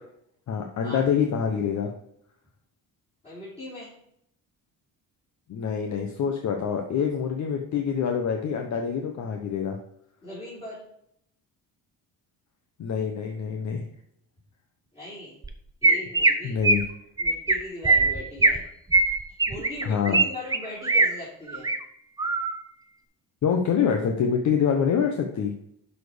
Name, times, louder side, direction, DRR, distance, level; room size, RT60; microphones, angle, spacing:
voice 1, 0.5-1.9 5.5-9.8 12.8-13.8 16.4-16.8 19.8-20.2 23.4-25.5, left 7 dB, 50° left, 3 dB, 1.0 m, -26 dB
voice 2, 3.2-3.9 10.2-10.8 14.9-15.4 15.8-16.6 17.2-18.6 19.5-21.7, left 1 dB, 15° left, -9 dB, 3.4 m, -39 dB
Chirp tweet, 15.4-15.5 15.8-16.3 16.6-16.9 17.2-17.5 17.8-18.6 18.9-20.2 20.5-21.1 21.5-21.8 22.2-22.5, right 3 dB, 10° right, 0.6 m, -20 dB
11.5 x 4.4 x 5.0 m, 0.73 s
cardioid pair, 155°, 36 cm